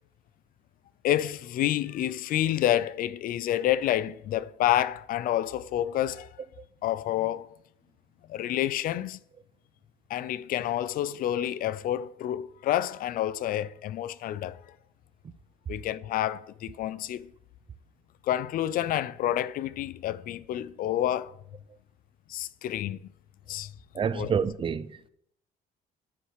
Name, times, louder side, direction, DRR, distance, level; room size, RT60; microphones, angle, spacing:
voice 1, 1.0-6.3 6.8-7.5 8.3-9.2 10.1-14.6 15.7-17.3 18.2-21.3 22.3-23.1 23.5-23.7 24.1-24.3, left 12 dB, 60° left, 0.4 m, -28 dB
voice 2, 23.9-25.1, right 7 dB, 30° right, 0.5 m, -28 dB
9.5 x 4.7 x 4.8 m
cardioid pair, 110°, 17 cm